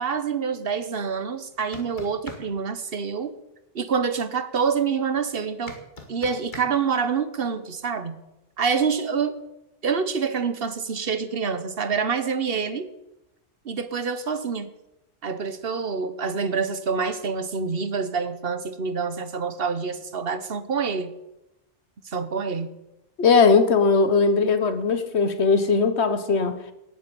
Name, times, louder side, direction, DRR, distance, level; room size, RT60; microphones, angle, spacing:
voice 1, 0.0-3.3 3.7-5.8 6.1-8.2 8.6-9.4 9.8-12.9 13.6-14.7 15.2-21.1 22.0-22.7, right 5 dB, 55° right, 12 dB, 1.3 m, -26 dB
sound 1, 1.5-2.4 5.7-6.7, left 2 dB, 45° left, 2.2 m, -40 dB
voice 2, 23.2-26.6, left 4 dB, 70° left, 11 dB, 1.5 m, -19 dB
18.0 x 8.9 x 7.0 m, 0.92 s
omnidirectional pair, 1.2 m